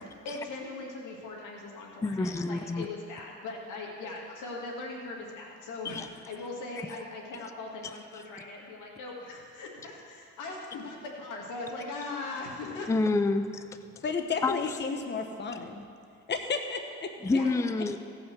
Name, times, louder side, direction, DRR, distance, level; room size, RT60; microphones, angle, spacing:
voice 1, 0.2-6.0 6.2-12.9 17.3-17.5, left 3 dB, 90° left, -1 dB, 2.2 m, -40 dB
voice 2, 2.0-2.9 5.8-6.1 8.1-8.2 12.9-13.8 14.4-14.6 17.2-18.0, left 3 dB, 10° left, 10 dB, 0.4 m, -28 dB
voice 3, 14.0-15.9 16.3-17.1, left 4 dB, 35° left, 5 dB, 1.0 m, -32 dB
16.0 x 5.7 x 6.9 m, 2.4 s
cardioid pair, 90°, 30 cm